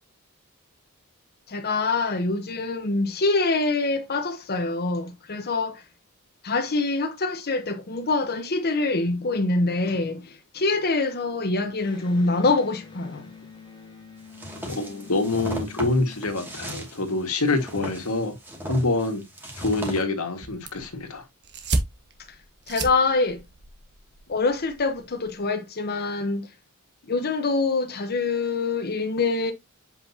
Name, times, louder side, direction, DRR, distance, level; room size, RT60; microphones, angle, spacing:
voice 1, 1.5-5.8 6.4-13.3 22.7-23.4 24.3-26.5 27.1-29.5, left 3 dB, 50° left, 1.1 m, -25 dB
Electric guitar, 11.8-17.3, left 5 dB, 20° left, 1.8 m, -47 dB
sound 1, 14.3-20.0, equal, 10° right, 2.4 m, -37 dB
voice 2, 14.7-18.3 18.6-19.2 19.6-21.2, left 2 dB, 85° left, 1.9 m, -26 dB
sound 2, 20.4-25.4, right 2 dB, 55° right, 1.5 m, -34 dB
7.9 x 5.4 x 2.8 m
head